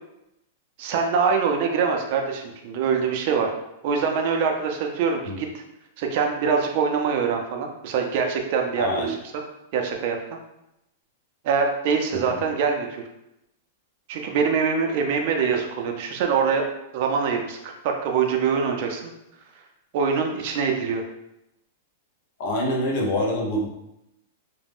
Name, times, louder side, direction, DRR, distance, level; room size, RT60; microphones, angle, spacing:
voice 1, 0.8-3.5 3.8-5.5 6.0-9.2 9.7-10.4 11.4-13.0 14.1-16.6 16.9-19.1 19.9-21.0, right 6 dB, 45° right, 2 dB, 0.4 m, -24 dB
voice 2, 8.8-9.2 12.1-12.4 22.4-23.7, equal, 45° left, 0 dB, 0.6 m, -26 dB
2.4 x 2.0 x 3.4 m, 0.86 s
supercardioid pair, 165°, 0 cm